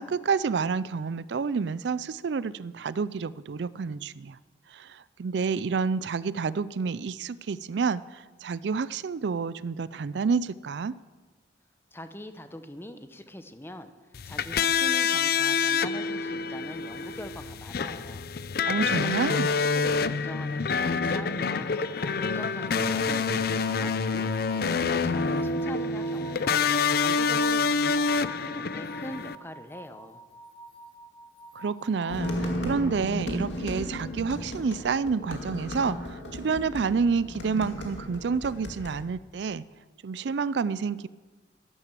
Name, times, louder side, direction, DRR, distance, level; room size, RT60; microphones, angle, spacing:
voice 1, 0.0-4.4 4.7-10.9 18.7-19.5 31.6-39.6 40.0-41.1, right 5 dB, 70° right, 18 dB, 0.4 m, -29 dB
voice 2, 11.9-13.9 14.2-18.3 19.0-21.7 22.2-26.7 26.9-30.2, left 1 dB, 10° left, 10 dB, 0.8 m, -42 dB
sound 1, 14.1-29.4, left 5 dB, 55° left, 0.5 m, -27 dB
sound 2, 21.7-32.5, right 2 dB, 30° left, 1.5 m, -48 dB
sound 3, 32.1-39.0, equal, 80° left, 2.3 m, -35 dB
12.0 x 12.0 x 7.6 m, 1.3 s
head